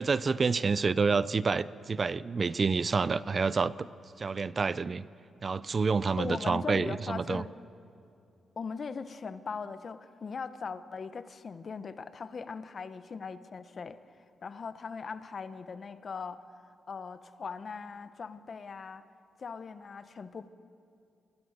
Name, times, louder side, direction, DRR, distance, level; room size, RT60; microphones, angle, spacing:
voice 1, 0.0-3.9 4.2-5.0 5.4-7.4, right 4 dB, 40° right, 17 dB, 0.5 m, -28 dB
voice 2, 6.2-7.5 8.6-14.0 14.4-16.5 16.9-19.0 19.4-20.5, left 5 dB, 50° left, 12 dB, 1.0 m, -39 dB
25.5 x 19.5 x 6.6 m, 2.5 s
cardioid pair, 80°, 0 cm